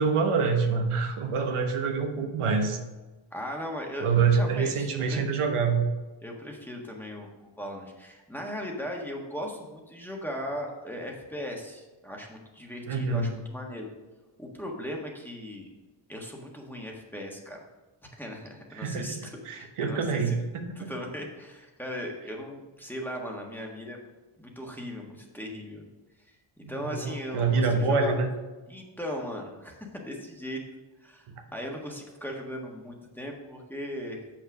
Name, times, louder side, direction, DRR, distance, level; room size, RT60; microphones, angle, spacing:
voice 1, 0.0-2.8 4.0-5.9 12.9-13.3 18.8-20.9 26.6-28.3, right 5 dB, 85° right, 4 dB, 1.1 m, -26 dB
voice 2, 3.3-5.2 6.2-13.9 14.4-15.7 16.1-17.6 18.2-20.4 20.7-24.1 24.4-25.8 26.3-26.4 26.7-28.1 28.7-30.6 31.0-34.2, equal, 5° left, 0 dB, 1.4 m, -38 dB
7.0 x 6.0 x 4.9 m, 1.2 s
cardioid pair, 95°, 50 cm